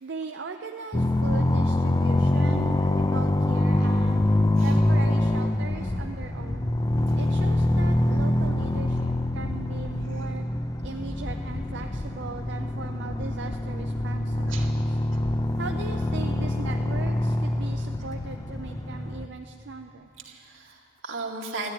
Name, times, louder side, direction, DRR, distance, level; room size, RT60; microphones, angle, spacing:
voice 1, 0.0-4.3 4.6-6.7 7.2-10.5 10.8-14.8 15.6-20.1, right 4 dB, 55° right, 4 dB, 0.5 m, -39 dB
sound 1, 0.9-19.3, left 1 dB, 20° left, 0.4 m, -25 dB
voice 2, 20.2-21.7, right 3 dB, 75° right, -1 dB, 2.1 m, -37 dB
13.0 x 11.5 x 9.5 m, 2.9 s
head